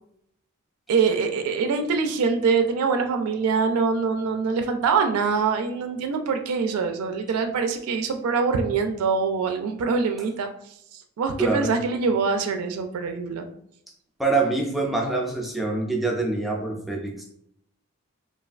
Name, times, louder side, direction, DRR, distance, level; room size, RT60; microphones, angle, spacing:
voice 1, 0.9-10.5 11.2-13.5, right 5 dB, 85° right, 6 dB, 0.3 m, -24 dB
voice 2, 11.4-11.7 14.2-17.2, right 3 dB, ahead, -1 dB, 0.3 m, -25 dB
3.1 x 2.4 x 2.4 m, 0.70 s
head